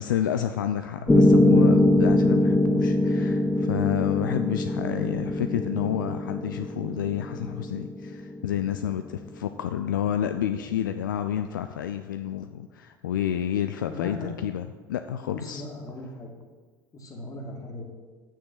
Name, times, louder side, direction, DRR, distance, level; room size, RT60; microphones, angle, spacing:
voice 1, 0.0-15.6, left 10 dB, 75° left, 8 dB, 0.4 m, -29 dB
voice 2, 0.9-1.4 3.0-3.2 13.9-14.3 15.2-16.3 16.9-17.8, left 2 dB, 30° left, 1 dB, 2.1 m, -39 dB
Piano, 1.1-9.1, left 1 dB, 10° left, 1.2 m, -23 dB
6.5 x 6.4 x 7.2 m, 1.4 s
figure-of-eight pair, 60°, 11 cm